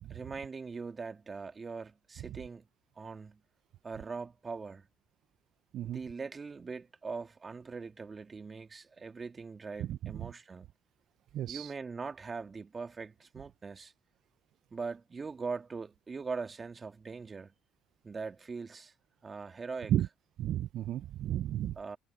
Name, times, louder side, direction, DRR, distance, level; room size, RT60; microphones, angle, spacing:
voice 1, 0.1-2.7 3.0-3.4 3.8-4.9 5.8-10.7 11.5-13.9 14.7-17.5 18.0-18.9 19.2-19.9 21.8-22.0, right 4 dB, 35° right, 2.0 m, -41 dB
voice 2, 9.8-10.3 11.3-11.7 19.9-20.1 20.4-21.8, right 12 dB, 65° right, 0.6 m, -33 dB
supercardioid pair, 65°, 0 cm